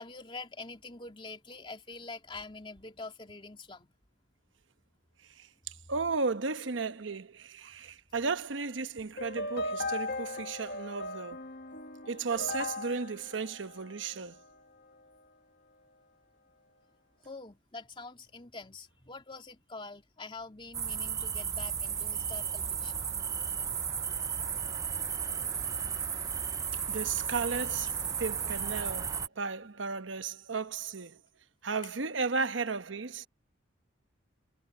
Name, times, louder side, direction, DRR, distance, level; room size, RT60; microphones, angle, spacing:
voice 1, 0.0-3.9 17.2-23.1, left 3 dB, 25° left, 2.9 m, -45 dB
voice 2, 5.9-11.4 12.1-14.4 26.9-31.2 31.6-33.3, right 4 dB, 80° right, 1.0 m, -34 dB
sound 1, 9.2-14.5, left 2 dB, 55° left, 1.4 m, -38 dB
sound 2, 20.7-29.3, right 7 dB, 15° right, 0.4 m, -34 dB
head